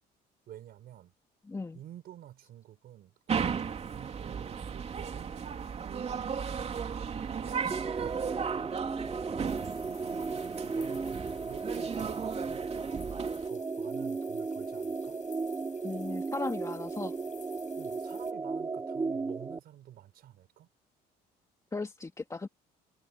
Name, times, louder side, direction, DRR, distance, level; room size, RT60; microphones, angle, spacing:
voice 1, 0.5-1.1 1.7-5.3 5.7-8.8 9.4-15.2 17.8-20.7, right 12 dB, 65° right, 5.5 m, -50 dB
voice 2, 1.5-1.8 15.8-17.1 21.7-22.5, left 3 dB, 20° left, 2.6 m, -36 dB
sound 1, 3.3-13.5, right 6 dB, 40° right, 3.1 m, -36 dB
sound 2, 7.7-19.6, right 4 dB, 20° right, 0.7 m, -35 dB
sound 3, 9.4-18.3, left 8 dB, 45° left, 5.5 m, -55 dB
cardioid pair, 110°, 17 cm